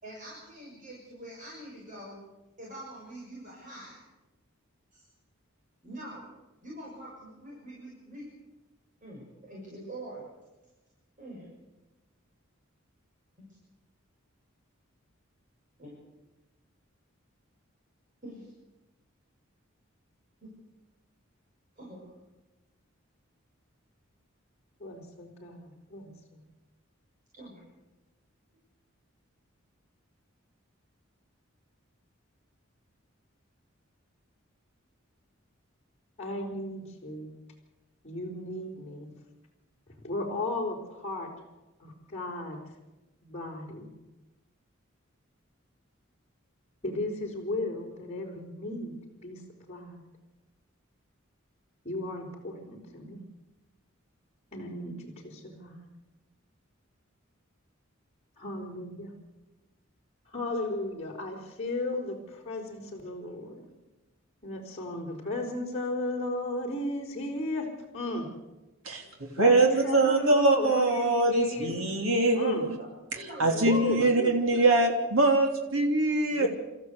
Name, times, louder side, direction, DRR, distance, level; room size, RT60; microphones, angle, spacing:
voice 1, 0.0-2.2 2.6-4.0 4.9-5.0 5.8-6.2 6.6-8.3 9.0-10.2 11.2-11.5 13.4-13.5 15.8-15.9 18.2-18.5 20.4-20.5 21.8-22.0 27.3-27.6 69.6-70.0 72.8-72.9 73.1-74.5, right 1 dB, 40° right, -4 dB, 6.7 m, -44 dB
voice 2, 24.8-26.4 36.2-37.3 38.0-39.1 40.0-41.3 41.8-42.6 43.2-43.9 46.8-49.4 49.7-50.0 51.8-53.2 54.5-55.8 58.4-59.1 60.3-63.6 64.4-68.3 69.4-71.7 72.3-72.6 73.7-74.7 76.3-76.5, left 2 dB, 30° left, -3 dB, 4.5 m, -35 dB
voice 3, 69.4-72.8 73.1-76.5, right 2 dB, 80° right, 2 dB, 3.1 m, -23 dB
28.5 x 14.0 x 8.1 m, 1.1 s
head